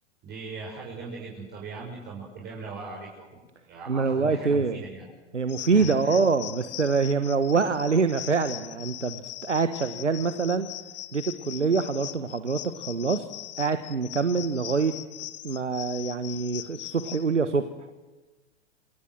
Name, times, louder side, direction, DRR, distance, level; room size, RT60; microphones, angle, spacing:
voice 1, 0.2-3.4 3.7-5.1 5.7-6.2, right 4 dB, 30° right, -3 dB, 6.7 m, -39 dB
voice 2, 3.9-4.8 5.3-10.7 11.1-13.3 13.6-14.9 15.4-17.6, right 4 dB, 85° right, 10 dB, 1.4 m, -25 dB
sound 1, 5.5-17.3, left 15 dB, 50° left, 1.5 m, -40 dB
27.5 x 27.0 x 7.8 m, 1.2 s
figure-of-eight pair, 100°, 35 cm